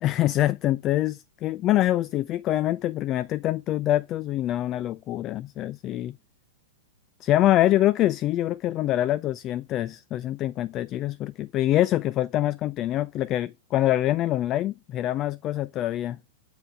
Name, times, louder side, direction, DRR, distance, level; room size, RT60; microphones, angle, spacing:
voice 1, 0.0-6.2 7.2-16.2, left 13 dB, 35° left, 0.3 m, -25 dB
7.5 x 4.5 x 4.1 m
hypercardioid pair, 110°, 0 cm